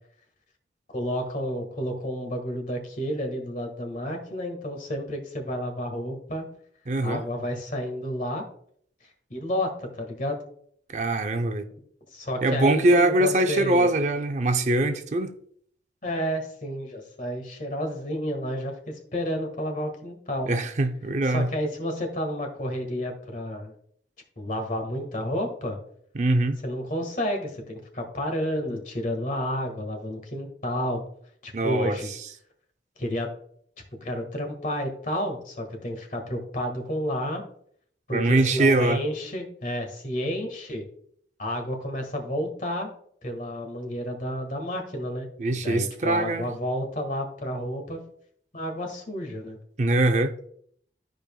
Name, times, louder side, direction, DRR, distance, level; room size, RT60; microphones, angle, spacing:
voice 1, 0.9-6.4 7.0-8.4 9.3-10.4 12.1-13.9 16.0-20.5 21.2-23.7 24.4-25.8 26.6-31.0 31.4-32.1 33.0-33.3 34.0-37.4 38.1-40.8 41.4-42.9 43.2-45.3 45.5-48.0 48.5-49.6, equal, 45° left, 1.6 m, -30 dB
voice 2, 6.9-7.2 10.9-11.7 12.4-15.4 20.5-21.5 26.2-26.6 31.5-32.0 38.1-39.0 45.4-46.5 49.8-50.3, right 2 dB, 40° right, 0.5 m, -22 dB
13.0 x 5.2 x 2.3 m
head